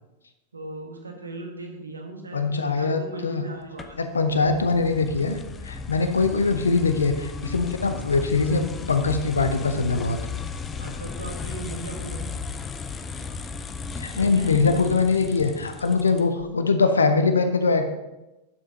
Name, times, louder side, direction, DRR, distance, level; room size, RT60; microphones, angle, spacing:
voice 1, 0.5-4.0 6.1-6.2 10.8-12.3 14.1-14.5, right 2 dB, 75° right, 3 dB, 1.3 m, -38 dB
voice 2, 2.3-3.4 4.0-5.4 5.6-10.2 14.0-17.9, left 4 dB, 75° left, 8 dB, 0.7 m, -22 dB
sound 1, 3.8-16.5, left 5 dB, 20° left, 0.5 m, -35 dB
9.6 x 7.2 x 2.8 m, 1.0 s
figure-of-eight pair, 90°, 0 cm